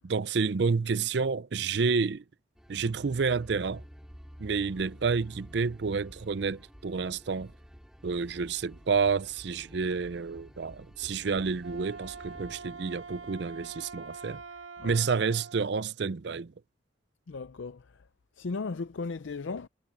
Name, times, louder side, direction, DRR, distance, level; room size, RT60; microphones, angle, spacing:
voice 1, 0.0-2.2 2.7-3.8 4.4-7.5 8.0-14.4 14.8-16.5, right 5 dB, 60° right, 0.5 m, -29 dB
sound 1, 2.6-14.5, equal, 5° right, 4.2 m, -51 dB
Wind instrument woodwind instrument, 11.5-15.7, right 4 dB, 85° right, 1.7 m, -45 dB
voice 2, 17.3-18.0 18.4-19.7, left 4 dB, 75° left, 0.6 m, -36 dB
head